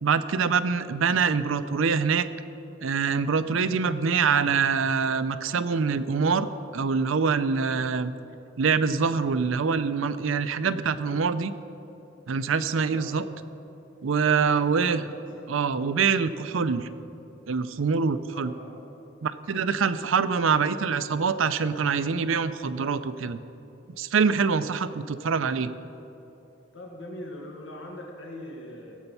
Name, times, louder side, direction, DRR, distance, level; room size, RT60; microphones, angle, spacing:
voice 1, 0.0-2.3 2.8-6.5 6.7-8.1 8.6-11.5 12.3-13.2 14.0-15.0 15.5-16.9 17.5-18.5 19.2-23.4 24.0-25.7, right 5 dB, 80° right, 13 dB, 0.5 m, -25 dB
voice 2, 12.9-13.2 14.1-15.5 16.1-16.2 18.3-18.8 26.7-29.0, left 1 dB, 75° left, 0 dB, 1.6 m, -42 dB
16.5 x 8.0 x 5.5 m, 3.0 s
head